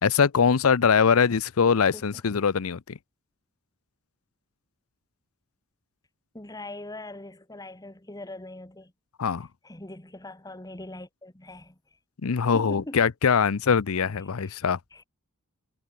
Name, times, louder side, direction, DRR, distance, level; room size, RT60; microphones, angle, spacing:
voice 1, 0.0-3.0 9.2-9.5 12.2-14.8, left 6 dB, 75° left, 0.6 m, -22 dB
voice 2, 6.3-8.9 9.6-11.8 12.5-13.0 14.4-14.6 14.9-15.0, left 1 dB, 15° left, 1.9 m, -41 dB
head